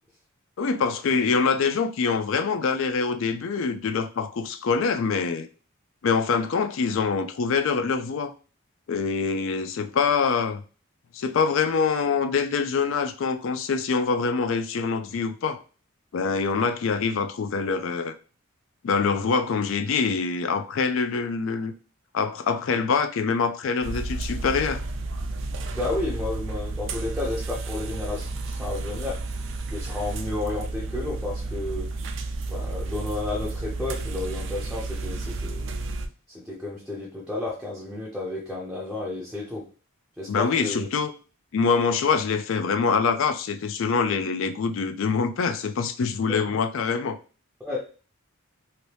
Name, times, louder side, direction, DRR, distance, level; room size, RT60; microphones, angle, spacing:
voice 1, 0.6-5.5 6.0-8.3 8.9-10.6 11.1-15.6 16.1-18.1 18.8-21.7 22.1-24.8 40.3-41.1 41.5-47.2, left 5 dB, 65° left, 0.4 m, -25 dB
sound 1, 23.8-36.1, right 2 dB, 60° right, 0.4 m, -32 dB
voice 2, 25.7-29.2 29.7-31.9 32.5-35.7 36.3-39.6 40.2-40.9 46.5-46.6 47.6-47.8, left 2 dB, ahead, 0.5 m, -32 dB
2.8 x 2.6 x 3.3 m
head